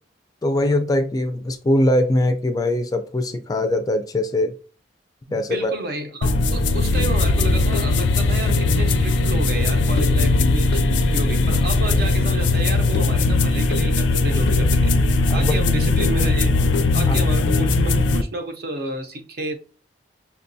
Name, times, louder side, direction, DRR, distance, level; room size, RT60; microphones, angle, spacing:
voice 1, 0.4-4.5 5.3-5.7 15.3-15.6 17.1-17.2, left 1 dB, 20° left, 0.3 m, -21 dB
voice 2, 5.3-10.8 11.1-14.9 15.3-16.5 16.9-19.5, right 1 dB, 55° right, 0.6 m, -31 dB
sound 1, 6.2-18.2, left 3 dB, 85° left, 0.4 m, -19 dB
5.9 x 2.2 x 2.6 m
head